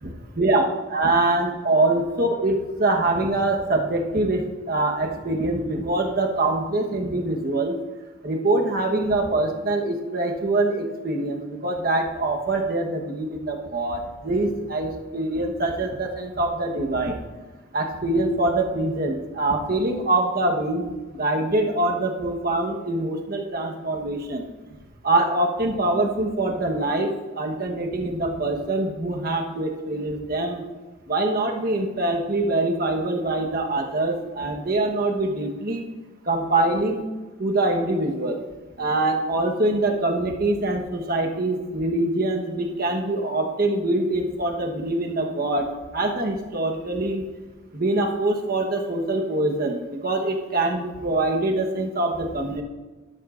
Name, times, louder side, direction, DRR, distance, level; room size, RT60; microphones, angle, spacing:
voice 1, 0.0-7.8 8.2-17.2 17.7-24.5 25.0-30.6 31.1-35.8 36.3-37.0 37.4-38.4 38.8-45.6 45.9-47.2 47.7-52.6, right 2 dB, 45° right, 2 dB, 1.2 m, -24 dB
11.5 x 11.5 x 2.5 m, 1.2 s
head